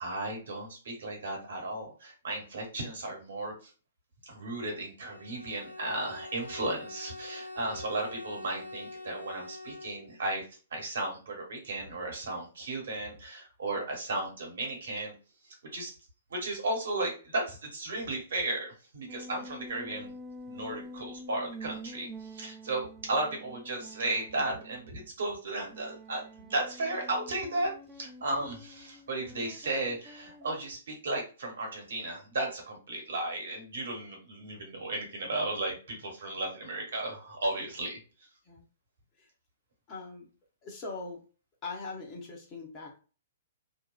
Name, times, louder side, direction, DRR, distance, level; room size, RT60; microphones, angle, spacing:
voice 1, 0.0-3.7 4.2-10.4 10.7-15.1 15.4-15.9 16.3-20.1 20.5-27.7 28.0-38.0, right 2 dB, 60° right, 0 dB, 1.2 m, -35 dB
Bowed string instrument, 5.0-10.3, left 2 dB, 85° left, 0.6 m, -44 dB
sound 1, 19.1-25.1 25.7-30.6, equal, 10° right, 0.3 m, -47 dB
voice 2, 39.9-40.3 40.6-41.2 41.6-43.0, left 3 dB, 25° left, -2 dB, 0.9 m, -41 dB
2.7 x 2.2 x 2.3 m, 0.37 s
figure-of-eight pair, 115°, 0 cm